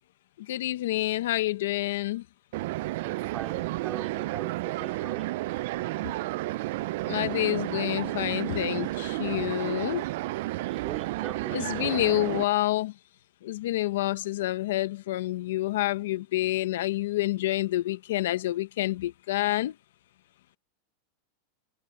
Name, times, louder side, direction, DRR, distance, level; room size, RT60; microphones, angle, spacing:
voice 1, 0.5-2.2 7.1-10.0 11.5-12.9 13.4-19.7, left 16 dB, 75° left, 1.0 m, -28 dB
sound 1, 2.5-12.4, right 18 dB, 55° right, 0.4 m, -32 dB
voice 2, 3.0-5.3 10.5-12.0, right 9 dB, 20° right, 4.3 m, -41 dB
supercardioid pair, 165°, 0 cm